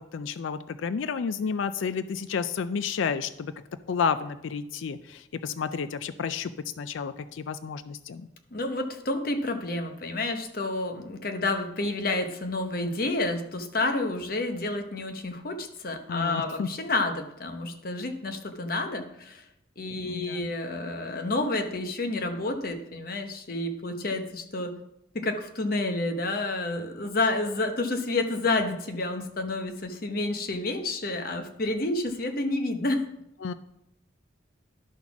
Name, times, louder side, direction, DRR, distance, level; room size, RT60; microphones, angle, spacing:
voice 1, 0.0-3.5 3.9-6.5 6.8-8.3 16.1-16.7 20.0-20.6 33.4-33.5, left 6 dB, 80° left, 13 dB, 0.4 m, -31 dB
voice 2, 8.5-19.4 19.8-24.7 25.1-33.1, left 2 dB, 50° left, 6 dB, 0.9 m, -29 dB
11.5 x 4.1 x 5.8 m, 0.83 s
head